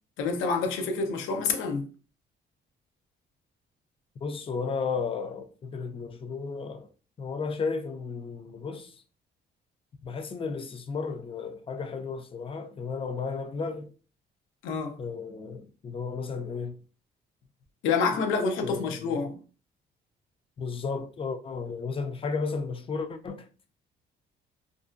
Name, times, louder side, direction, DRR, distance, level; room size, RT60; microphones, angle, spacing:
voice 1, 0.2-1.9 14.6-15.0 17.8-19.4, left 4 dB, 90° left, 0.5 m, -27 dB
voice 2, 4.2-6.9 7.2-8.9 10.0-13.9 15.0-16.7 18.6-19.2 20.6-23.5, left 5 dB, 30° left, 0.4 m, -33 dB
2.4 x 2.1 x 2.5 m
cardioid pair, 90°, 20 cm